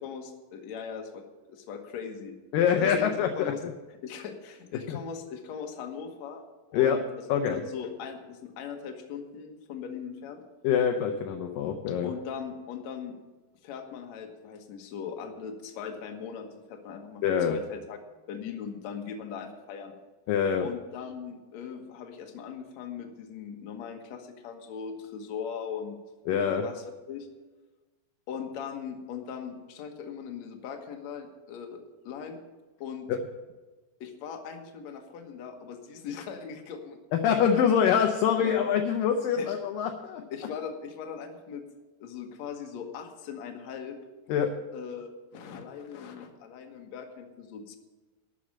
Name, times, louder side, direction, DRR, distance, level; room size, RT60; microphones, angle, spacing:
voice 1, 0.0-1.2 1.5-2.4 2.8-3.6 4.0-6.4 6.7-7.0 7.5-10.4 12.0-13.1 13.6-17.2 17.5-18.0 18.3-19.9 20.6-26.0 26.6-27.3 28.3-32.4 32.8-33.1 34.0-37.0 37.3-37.6 38.4-38.5 39.4-39.5 40.3-41.6 42.0-44.0 44.7-47.8, left 7 dB, 60° left, 4 dB, 1.9 m, -39 dB
voice 2, 2.5-3.7 4.9-5.0 6.7-7.0 7.3-7.6 10.6-12.1 17.2-17.6 20.3-20.7 26.3-26.6 33.1-33.2 37.1-40.2 44.3-44.5, left 8 dB, 80° left, 5 dB, 2.0 m, -25 dB
12.5 x 6.4 x 8.7 m, 1.2 s
omnidirectional pair, 4.8 m